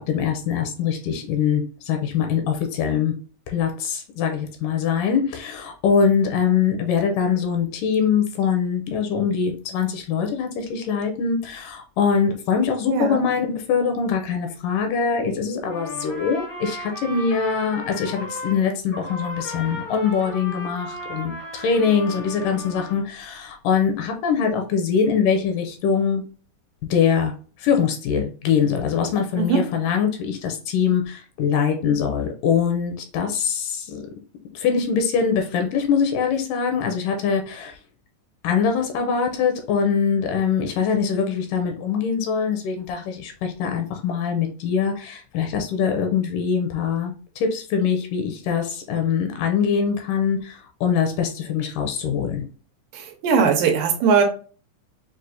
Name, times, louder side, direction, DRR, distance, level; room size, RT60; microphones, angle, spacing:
voice 1, 0.0-3.1 3.5-26.2 26.9-27.3 27.6-34.0 34.5-37.8 38.4-52.4, left 6 dB, 80° left, 4 dB, 2.1 m, -23 dB
voice 2, 12.9-13.2 29.4-29.7 52.9-54.2, right 6 dB, 85° right, 2 dB, 2.4 m, -20 dB
Trumpet, 15.6-18.6 18.9-23.0, left 1 dB, 60° left, 0.9 m, -35 dB
6.1 x 2.4 x 2.5 m, 0.39 s
omnidirectional pair, 3.8 m